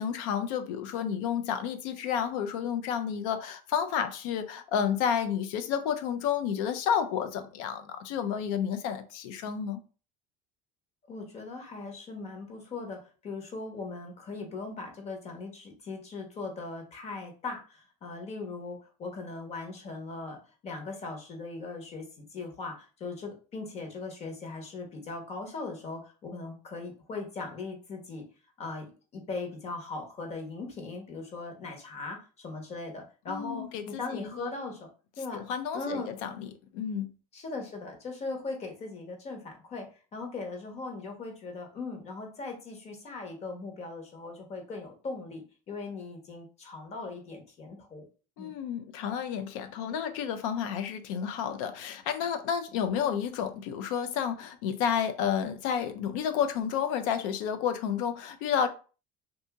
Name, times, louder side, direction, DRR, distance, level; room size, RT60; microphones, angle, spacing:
voice 1, 0.0-9.8 33.3-34.5 35.3-37.1 48.4-58.7, left 8 dB, 80° left, 0.6 m, -31 dB
voice 2, 11.1-28.2 28.6-34.9 35.2-35.4 35.7-36.1 37.3-48.0 48.4-48.5, left 3 dB, 40° left, 1.2 m, -39 dB
2.7 x 2.7 x 3.5 m
supercardioid pair, 115°, 17 cm